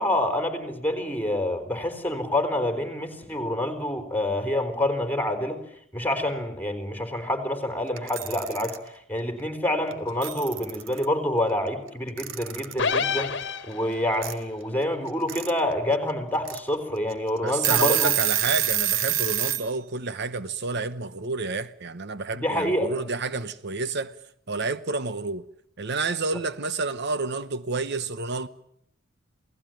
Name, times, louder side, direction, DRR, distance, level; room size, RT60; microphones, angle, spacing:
voice 1, 0.0-5.6 5.9-18.1 22.3-22.9, left 1 dB, 10° left, 4.0 m, -27 dB
Alarm / Clock, 8.0-8.8 9.9-10.0 10.2-11.1 12.2-12.8 14.2-14.3 15.1-15.5 15.9-16.0 16.5-16.6 17.1-17.2 17.5-19.7, right 10 dB, 75° right, 1.7 m, -26 dB
sound 1, 12.8-14.2, left 5 dB, 60° left, 1.5 m, -27 dB
voice 2, 17.4-24.1 24.5-25.4 25.8-28.5, right 3 dB, 60° right, 1.0 m, -29 dB
28.5 x 18.0 x 9.1 m
head